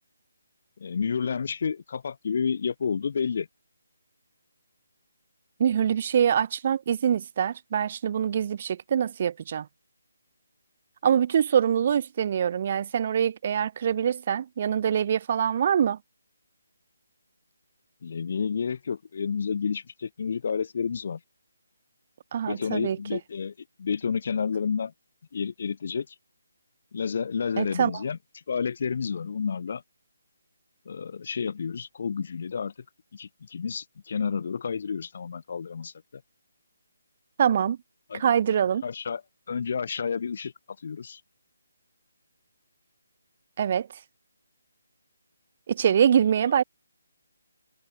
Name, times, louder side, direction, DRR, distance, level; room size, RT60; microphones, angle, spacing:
voice 1, 0.8-3.5 18.0-21.2 22.5-23.5 23.8-24.9 25.3-26.2 26.9-28.2 28.5-29.8 30.9-32.7 33.1-36.2 38.1-38.3 38.8-39.2 39.5-40.5 40.8-41.2, left 6 dB, 50° left, 1.9 m, -30 dB
voice 2, 5.6-9.7 11.0-16.0 22.3-23.0 27.6-27.9 37.4-37.8 38.1-38.8 43.6-43.9 45.7-46.6, right 8 dB, 40° right, 0.3 m, -24 dB
figure-of-eight pair, 150°, 0 cm